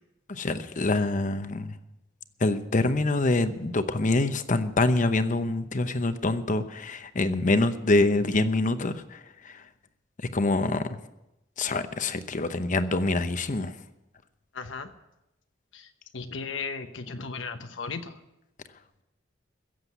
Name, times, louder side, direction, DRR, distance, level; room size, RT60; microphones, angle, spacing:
voice 1, 0.3-1.7 2.4-9.2 9.4-9.6 10.3-10.8 11.6-13.7, left 2 dB, 40° left, 11 dB, 0.9 m, -25 dB
voice 2, 14.5-14.9 15.7-15.9 16.1-18.1, left 4 dB, 75° left, 7 dB, 1.0 m, -35 dB
16.0 x 7.7 x 8.2 m, 0.93 s
head